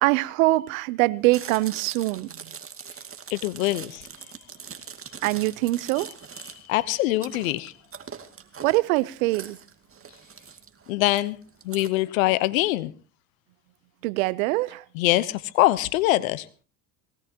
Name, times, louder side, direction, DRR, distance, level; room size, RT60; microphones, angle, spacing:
voice 1, 0.0-2.5 5.2-6.1 8.6-9.6 14.0-14.8, right 20 dB, 85° right, 0.8 m, -23 dB
Chewing mastication, 1.2-11.9, right 6 dB, 35° right, 2.3 m, -42 dB
voice 2, 3.3-4.1 6.7-7.7 10.9-11.4 11.6-12.9 14.9-16.5, left 17 dB, 90° left, 1.0 m, -23 dB
21.0 x 18.0 x 2.9 m
supercardioid pair, 75°, 40 cm